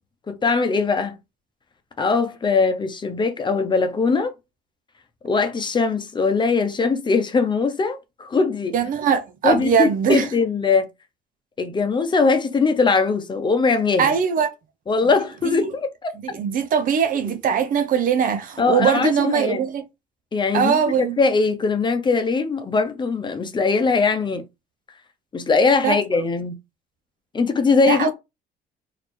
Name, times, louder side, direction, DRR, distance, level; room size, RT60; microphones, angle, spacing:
voice 1, 0.3-1.1 2.0-4.3 5.2-8.8 9.4-10.9 11.6-14.1 14.9-16.1 18.6-19.6 20.3-20.8 21.2-24.4 25.3-26.5 27.3-28.1, left 4 dB, 25° left, 0.8 m, -21 dB
voice 2, 8.7-10.2 14.0-14.5 15.4-15.7 16.2-19.8 20.5-21.2 25.8-26.0 27.9-28.1, right 7 dB, 55° right, 0.6 m, -21 dB
4.1 x 2.8 x 3.2 m
cardioid pair, 110°, 17 cm